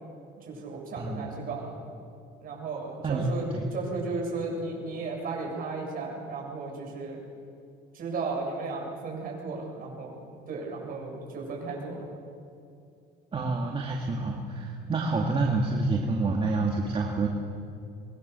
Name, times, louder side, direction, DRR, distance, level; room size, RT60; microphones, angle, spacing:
voice 1, 0.4-1.8 2.4-7.2 7.9-10.1 10.5-12.1, right 3 dB, 45° right, 0 dB, 7.6 m, -35 dB
voice 2, 1.0-1.3 3.0-3.7 13.3-17.3, right 3 dB, 25° right, 0 dB, 2.3 m, -28 dB
24.5 x 22.0 x 7.0 m, 2.5 s
cardioid pair, 135°, 20 cm